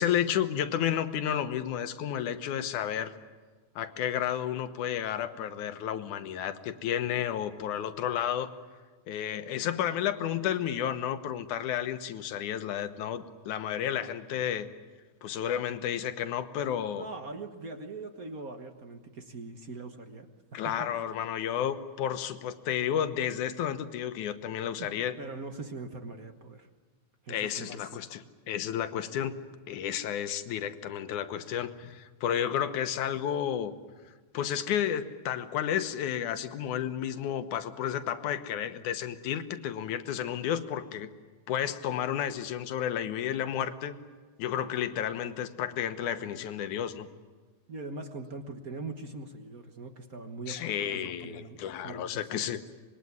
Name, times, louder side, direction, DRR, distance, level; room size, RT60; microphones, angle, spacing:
voice 1, 0.0-3.1 3.8-8.5 9.1-14.7 15.2-17.1 20.5-25.2 27.3-29.4 29.7-33.7 34.3-41.1 41.5-44.0 44.4-47.1 50.5-52.6, left 10 dB, 90° left, 10 dB, 2.6 m, -32 dB
voice 2, 17.0-20.7 24.8-24.9 25.2-26.7 27.2-28.0 47.7-52.5, right 3 dB, 45° right, 6 dB, 1.1 m, -42 dB
25.5 x 21.5 x 9.5 m, 1.4 s
omnidirectional pair, 3.4 m